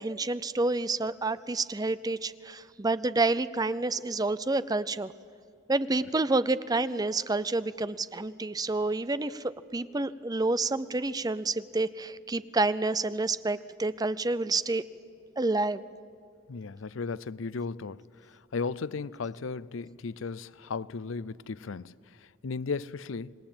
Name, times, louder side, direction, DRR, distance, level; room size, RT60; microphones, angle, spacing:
voice 1, 0.0-5.1 5.7-14.8 15.4-15.8, right 2 dB, 20° right, 0.6 m, -29 dB
voice 2, 16.5-23.3, left 4 dB, 75° left, 0.5 m, -36 dB
26.5 x 21.0 x 8.8 m
head